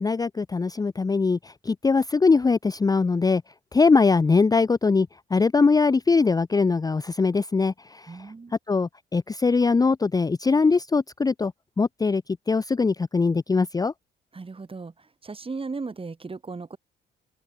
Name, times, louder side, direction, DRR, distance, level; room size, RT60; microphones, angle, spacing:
voice 1, 0.0-3.4 3.7-8.2 8.7-11.5 11.8-13.9, left 4 dB, 20° left, 0.6 m, -22 dB
voice 2, 8.1-8.5 14.3-16.8, right 4 dB, 25° right, 4.9 m, -36 dB
open air
cardioid pair, 90°, 20 cm